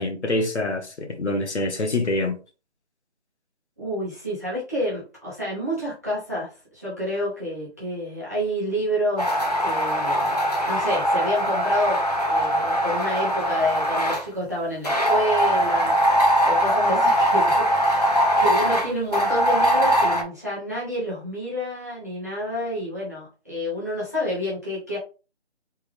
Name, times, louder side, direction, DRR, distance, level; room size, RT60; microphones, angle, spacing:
voice 1, 0.0-2.4, left 2 dB, 90° left, 1.1 m, -25 dB
voice 2, 3.8-25.0, equal, 15° right, 0.7 m, -29 dB
sound 1, 9.2-14.2 14.8-20.2, equal, 40° left, 0.5 m, -21 dB
3.5 x 2.2 x 3.2 m
figure-of-eight pair, 175°, 33 cm